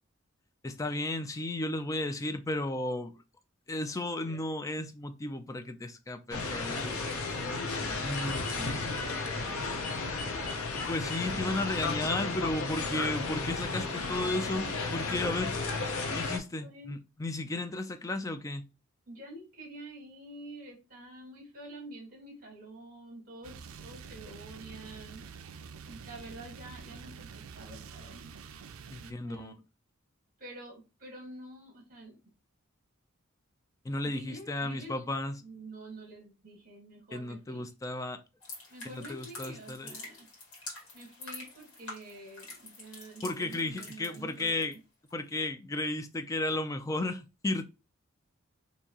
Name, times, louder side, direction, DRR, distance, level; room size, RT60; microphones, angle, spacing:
voice 1, 0.6-3.1 3.7-6.9 8.0-8.4 10.9-15.5 16.2-18.7 28.9-29.5 33.8-35.4 37.1-38.2 38.9-39.9 43.2-44.8 45.1-47.6, left 2 dB, 15° left, 0.3 m, -34 dB
sound 1, 6.3-16.4, left 3 dB, 90° left, 0.7 m, -33 dB
voice 2, 6.7-10.6 16.6-17.0 19.1-25.2 25.9-28.3 29.0-29.6 30.4-32.2 34.0-35.0 35.4-37.6 38.7-40.3 40.9-44.8, right 1 dB, 40° right, 1.7 m, -48 dB
sound 2, 23.4-29.1, right 6 dB, 75° right, 0.4 m, -47 dB
sound 3, 38.4-44.7 45.1-45.4, left 3 dB, 75° left, 1.8 m, -46 dB
4.5 x 2.7 x 2.8 m
head